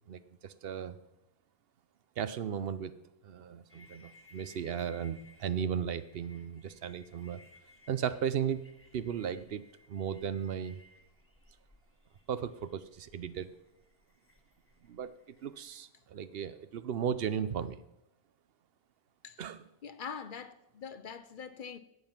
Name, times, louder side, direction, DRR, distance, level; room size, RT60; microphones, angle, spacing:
voice 1, 0.1-1.0 2.2-2.9 3.2-7.4 7.9-8.6 8.9-10.8 12.3-13.5 14.8-17.8 19.4-19.6, right 8 dB, 70° right, 0.8 m, -36 dB
sound 1, 3.7-15.8, left 2 dB, 15° left, 1.1 m, -62 dB
voice 2, 19.8-21.8, left 6 dB, 55° left, 0.8 m, -43 dB
16.0 x 5.6 x 5.9 m
omnidirectional pair, 1.1 m